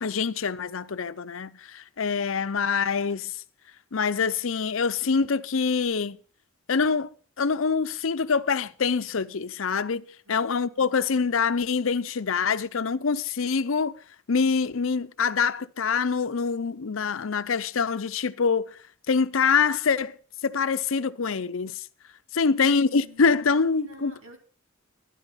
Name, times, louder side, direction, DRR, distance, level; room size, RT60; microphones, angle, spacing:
voice 1, 0.0-3.4 3.9-6.2 6.7-7.1 7.4-13.9 14.3-18.8 19.1-20.2 20.4-21.8 22.3-24.1, left 5 dB, 70° left, 0.6 m, -25 dB
voice 2, 10.3-11.0 22.4-23.2 23.8-24.4, equal, 70° right, 3.0 m, -49 dB
12.5 x 11.0 x 5.6 m
head